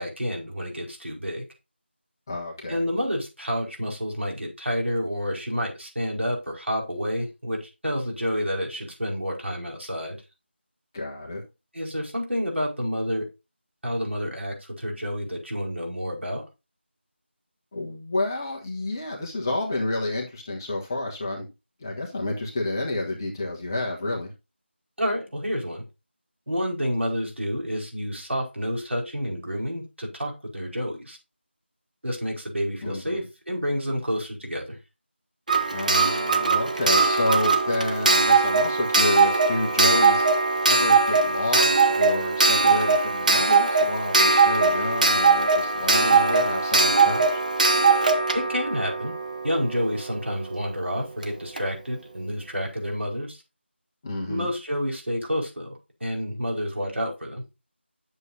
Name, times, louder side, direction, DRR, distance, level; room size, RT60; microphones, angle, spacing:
voice 1, 0.0-1.5 2.7-10.2 11.7-13.2 13.8-16.4 25.0-25.8 26.5-31.2 32.0-34.8 48.3-49.1 49.4-53.4 54.3-55.7 56.0-57.4, equal, 75° right, 5.1 m, -29 dB
voice 2, 2.3-2.8 10.9-11.4 17.7-21.5 21.8-24.3 32.8-33.2 35.7-40.2 40.7-47.4 54.0-54.5, left 2 dB, 15° left, 1.2 m, -29 dB
Clock, 35.5-50.1 51.2-51.3 51.6-51.7, right 3 dB, 40° right, 0.9 m, -20 dB
11.0 x 7.0 x 2.8 m
figure-of-eight pair, 170°, 6 cm